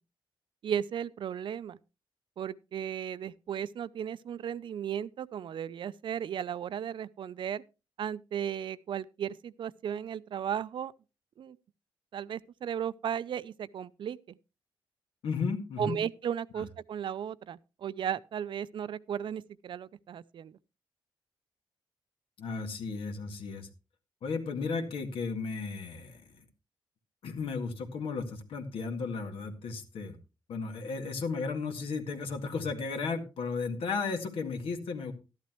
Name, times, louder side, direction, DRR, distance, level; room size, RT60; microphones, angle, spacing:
voice 1, 0.6-1.8 2.4-7.6 8.0-10.9 11.4-11.6 12.1-14.4 15.8-20.6, right 9 dB, 65° right, 0.5 m, -35 dB
voice 2, 15.2-16.0 22.4-23.7 24.2-26.2 27.2-30.2 30.5-35.1, left 4 dB, 85° left, 1.9 m, -34 dB
13.0 x 11.5 x 3.0 m
wide cardioid pair, 130°, 9 cm